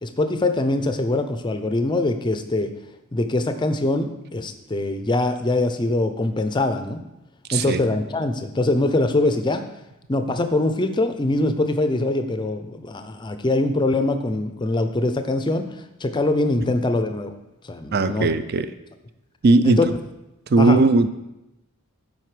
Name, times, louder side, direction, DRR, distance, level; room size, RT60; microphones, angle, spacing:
voice 1, 0.0-2.7 3.1-7.1 7.5-9.6 10.1-17.3 17.7-18.3 19.6-19.9 20.6-20.8, left 2 dB, 20° left, 9 dB, 0.5 m, -23 dB
voice 2, 7.5-7.8 17.9-18.7 19.4-19.9 20.5-21.1, right 3 dB, 45° right, 12 dB, 0.4 m, -18 dB
7.7 x 5.2 x 5.0 m, 0.92 s
head